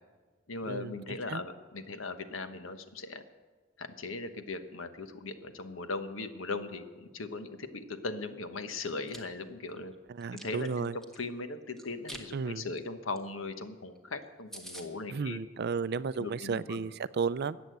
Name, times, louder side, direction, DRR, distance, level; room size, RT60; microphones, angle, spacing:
voice 1, 0.5-3.2 3.8-9.9 10.3-15.4 16.2-16.9, left 3 dB, 80° left, 9 dB, 1.1 m, -39 dB
Chewing mastication, 8.9-9.2 9.7-11.2 11.8-12.3 12.6-12.8 13.1-13.2 13.5-13.6 14.0-14.1 14.2-14.3 14.5-14.9, right 1 dB, ahead, 1.4 m, -46 dB
voice 2, 10.1-11.0 12.3-12.7 15.1-17.6, right 5 dB, 55° right, 17 dB, 0.4 m, -33 dB
14.0 x 8.4 x 9.3 m, 1.4 s
head